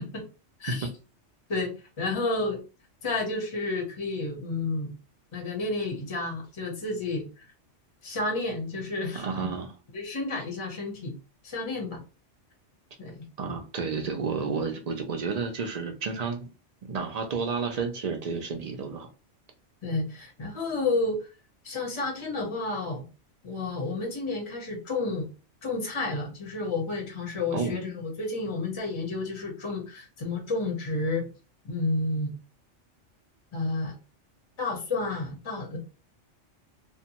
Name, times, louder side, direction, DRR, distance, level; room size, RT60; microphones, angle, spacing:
voice 1, 1.5-2.6 3.0-4.9 5.3-7.5 8.0-9.5 9.9-11.1 11.4-12.0 13.0-13.2 19.8-21.3 21.6-23.0 23.4-25.3 25.6-31.3 31.6-32.3 33.5-33.9 34.6-35.8, left 3 dB, 30° left, 1 dB, 0.6 m, -31 dB
voice 2, 9.1-9.7 13.4-16.5 16.9-19.1 27.5-27.7, right 5 dB, 65° right, 4 dB, 0.4 m, -31 dB
2.6 x 2.2 x 2.8 m, 0.32 s
omnidirectional pair, 1.2 m